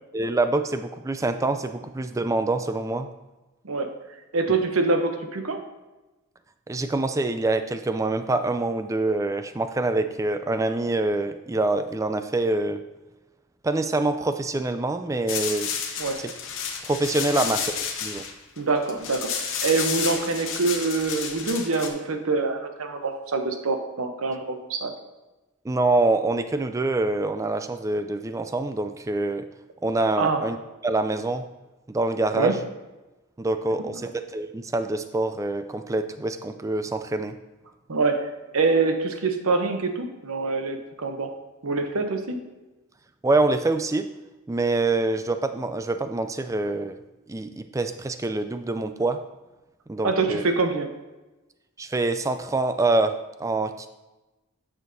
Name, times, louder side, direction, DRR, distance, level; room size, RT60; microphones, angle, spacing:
voice 1, 0.1-3.1 6.7-12.8 13.6-15.7 16.9-17.6 18.0-18.2 25.6-29.4 29.8-30.6 30.8-31.4 31.9-32.6 33.4-37.4 43.2-44.1 44.5-46.9 47.3-49.2 49.9-50.4 51.8-53.1 53.4-53.9, right 2 dB, 15° right, 9 dB, 0.3 m, -25 dB
voice 2, 4.3-5.6 16.0-16.2 18.6-24.9 30.2-30.5 32.3-32.5 37.9-41.3 41.6-42.4 50.0-50.9, right 3 dB, 75° right, 6 dB, 0.8 m, -25 dB
sound 1, 15.3-21.9, left 7 dB, 60° left, 0.9 m, -31 dB
9.1 x 6.4 x 2.7 m, 1.1 s
head